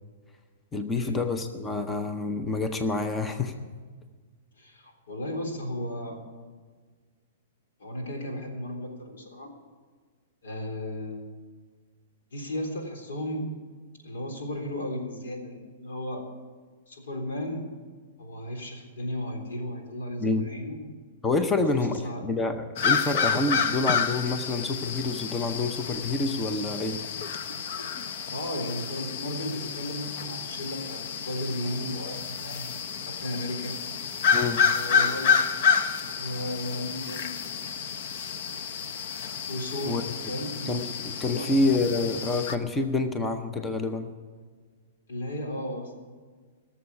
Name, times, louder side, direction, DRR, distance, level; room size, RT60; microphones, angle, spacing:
voice 1, 0.7-3.5 20.2-20.5 21.2-27.0 34.3-34.6 39.8-40.0 40.7-44.1, left 3 dB, 10° left, 7 dB, 0.6 m, -27 dB
voice 2, 4.6-6.2 7.8-9.5 10.4-11.3 12.3-13.5 14.0-16.2 16.9-17.6 18.2-20.8 21.5-22.2 23.6-23.7 28.3-32.7 33.2-33.8 34.4-35.3 36.2-37.3 39.5-40.7 41.3-41.5 45.1-45.9, left 1 dB, 90° left, 2 dB, 3.6 m, -35 dB
sound 1, 22.8-42.6, left 6 dB, 45° left, 0.7 m, -29 dB
17.5 x 7.1 x 8.4 m, 1.5 s
hypercardioid pair, 170°, 0 cm